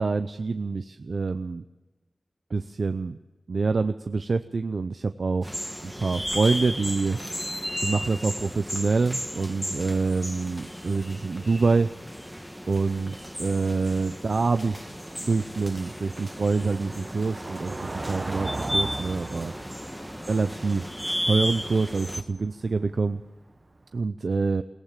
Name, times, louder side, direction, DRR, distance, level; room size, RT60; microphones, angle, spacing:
voice 1, 0.0-1.6 2.5-3.2 3.5-5.6 5.8-7.2 7.8-11.9 12.7-15.0 15.3-19.5 20.3-20.9 21.2-23.2 23.9-24.6, right 4 dB, 75° right, 9 dB, 0.7 m, -26 dB
sound 1, 5.4-22.2, equal, 5° left, 1.6 m, -34 dB
Car passing by / Engine, 13.2-23.8, right 2 dB, 45° right, 1.2 m, -39 dB
22.0 x 17.5 x 7.4 m, 1.1 s
wide cardioid pair, 65°, 0 cm